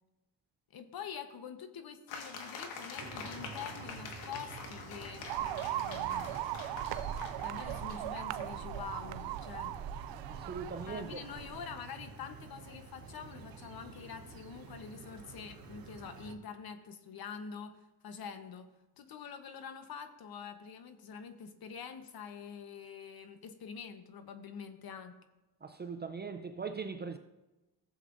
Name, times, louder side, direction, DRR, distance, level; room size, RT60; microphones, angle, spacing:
voice 1, 0.7-6.3 7.4-9.8 10.9-18.7 19.0-25.2, left 6 dB, 50° left, 1.1 m, -46 dB
sound 1, 2.1-8.5, left 5 dB, 85° left, 1.7 m, -46 dB
sound 2, 3.0-16.3, right 4 dB, 50° right, 1.1 m, -49 dB
sound 3, 5.3-11.6, right 12 dB, 70° right, 0.5 m, -38 dB
voice 2, 10.4-11.2 25.6-27.2, right 5 dB, 25° right, 0.5 m, -40 dB
15.0 x 7.6 x 2.6 m
cardioid pair, 115°, 45 cm